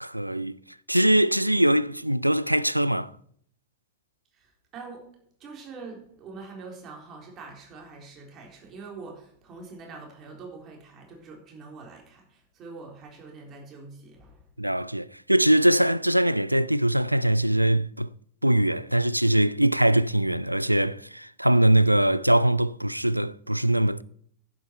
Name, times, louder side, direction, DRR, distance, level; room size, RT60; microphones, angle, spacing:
voice 1, 0.0-0.6 0.9-3.1 14.6-18.1 18.4-24.0, right 1 dB, 90° right, 0.3 m, -22 dB
voice 2, 4.3-5.1 5.4-14.4, right 4 dB, 30° right, 3.7 m, -44 dB
11.0 x 9.2 x 4.6 m
figure-of-eight pair, 90°, 0 cm